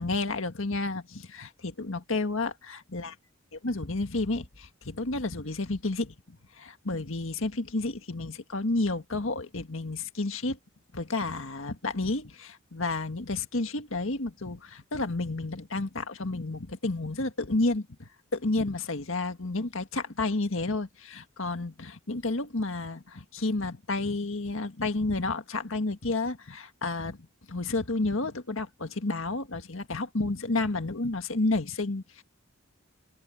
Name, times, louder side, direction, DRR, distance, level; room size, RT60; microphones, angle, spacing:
voice 1, 0.0-3.1 3.6-10.6 10.9-32.2, left 2 dB, 70° left, 1.8 m, -31 dB
head